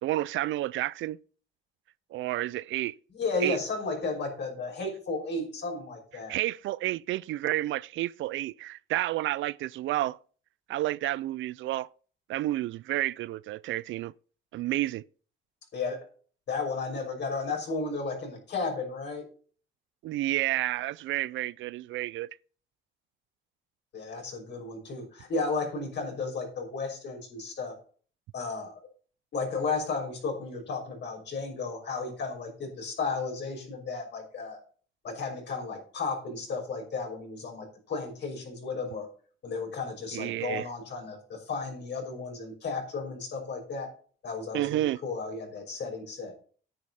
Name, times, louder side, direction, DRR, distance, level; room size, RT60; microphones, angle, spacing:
voice 1, 0.0-1.2 2.1-3.0 3.4-3.6 6.3-10.2 10.7-11.9 12.3-14.1 14.5-15.0 20.0-22.4 40.1-40.7 44.5-45.0, right 15 dB, 75° right, 0.4 m, -30 dB
voice 2, 3.1-6.3 15.7-16.0 16.5-19.2 23.9-27.8 28.3-28.7 29.3-34.6 35.0-39.1 39.4-43.9 44.2-46.3, left 4 dB, 65° left, 6.0 m, -34 dB
9.9 x 8.7 x 4.2 m
cardioid pair, 90°, 20 cm